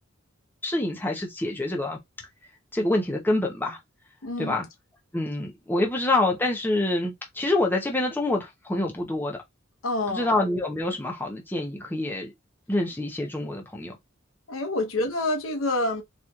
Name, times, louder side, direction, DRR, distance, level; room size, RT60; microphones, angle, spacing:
voice 1, 0.6-2.0 2.7-3.8 4.4-4.7 5.1-9.4 10.1-12.3 12.7-14.0, left 2 dB, 10° left, 0.7 m, -26 dB
voice 2, 4.2-4.6 9.8-10.3 14.5-16.0, left 2 dB, 85° left, 0.9 m, -27 dB
4.1 x 3.0 x 2.3 m
head